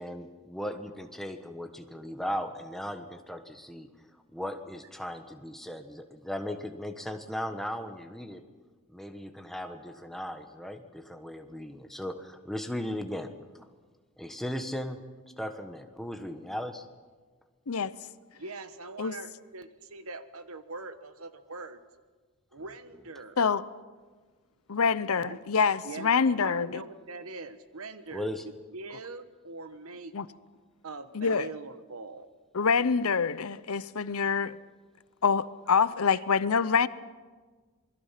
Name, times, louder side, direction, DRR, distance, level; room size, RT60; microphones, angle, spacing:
voice 1, 0.0-3.9 4.3-8.4 8.9-13.3 14.2-15.0 15.4-16.9 28.1-28.4, left 1 dB, ahead, 1.3 m, -37 dB
voice 2, 18.3-21.8 22.5-23.4 25.2-25.4 25.8-28.3 28.7-30.1 30.8-32.3 36.1-36.2, right 3 dB, 75° right, 1.3 m, -42 dB
voice 3, 24.7-26.8 30.1-30.3 31.1-31.5 32.5-34.6 35.2-36.9, left 5 dB, 75° left, 0.7 m, -26 dB
27.5 x 21.5 x 5.9 m
head